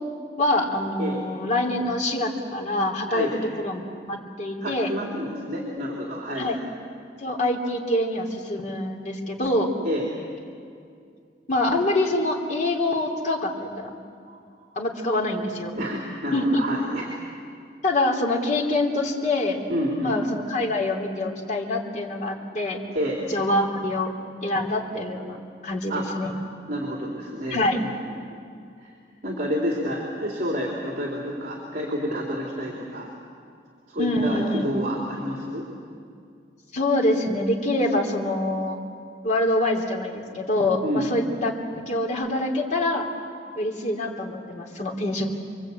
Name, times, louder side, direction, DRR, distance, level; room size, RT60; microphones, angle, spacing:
voice 1, 0.4-3.3 3.6-3.8 4.1-4.9 6.4-6.6 7.2-9.7 11.5-13.9 14.8-15.8 16.3-16.6 17.8-19.6 20.0-22.8 23.3-24.1 24.4-25.4 25.6-26.3 27.5-27.8 34.0-34.7 36.7-38.8 39.2-43.1 43.6-45.3, left 1 dB, 45° left, 1 dB, 3.5 m, -25 dB
voice 2, 4.6-6.5 9.8-10.0 14.3-14.4 15.7-17.1 19.7-20.2 22.9-23.2 25.9-26.1 26.7-28.4 28.8-28.9 29.2-33.1 33.9-35.7 40.8-41.1, equal, 50° right, -2 dB, 3.7 m, -29 dB
28.0 x 23.5 x 8.7 m, 2.3 s
head